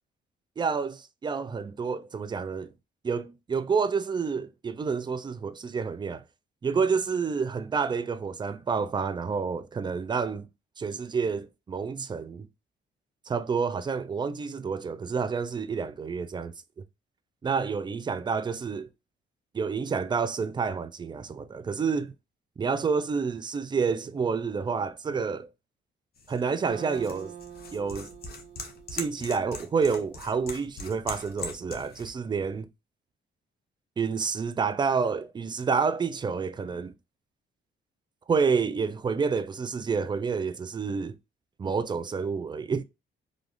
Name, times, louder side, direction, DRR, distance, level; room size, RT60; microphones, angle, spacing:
voice 1, 0.6-0.9 1.2-2.7 3.0-6.2 6.6-10.5 10.8-12.5 13.3-16.5 17.4-18.9 19.5-22.1 22.6-25.5 26.3-27.3 27.7-28.1 28.9-32.7 34.0-36.9 38.3-41.2 41.6-42.8, right 5 dB, 25° right, 0.4 m, -29 dB
sound 1, 26.2-32.1, left 4 dB, 50° left, 0.8 m, -41 dB
Acoustic guitar, 26.7-30.3, right 9 dB, 75° right, 0.6 m, -46 dB
3.3 x 2.4 x 2.5 m
cardioid pair, 90°, 20 cm